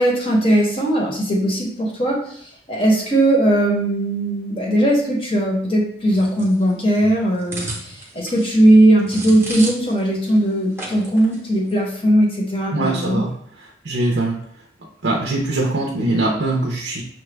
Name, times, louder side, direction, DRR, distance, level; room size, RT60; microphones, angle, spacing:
voice 1, 0.0-13.2, right 1 dB, 30° left, -2 dB, 0.8 m, -18 dB
sound 1, 6.1-10.0 10.3-10.4 10.8-11.4 11.7-11.9, right 2 dB, 10° right, 0.8 m, -33 dB
voice 2, 12.7-13.3 13.6-14.4 15.0-17.0, right 2 dB, 75° right, -2 dB, 0.6 m, -22 dB
5.7 x 2.2 x 3.3 m, 0.63 s
head